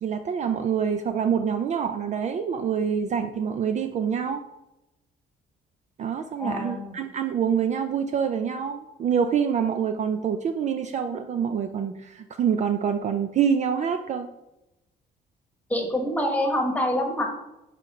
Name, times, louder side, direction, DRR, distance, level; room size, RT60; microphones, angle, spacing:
voice 1, 0.0-4.4 6.0-14.3, right 7 dB, 40° right, 7 dB, 0.4 m, -26 dB
voice 2, 6.4-7.0 15.7-17.3, left 1 dB, 10° left, 2 dB, 1.2 m, -26 dB
4.9 x 4.5 x 5.8 m, 0.94 s
cardioid pair, 155°, 18 cm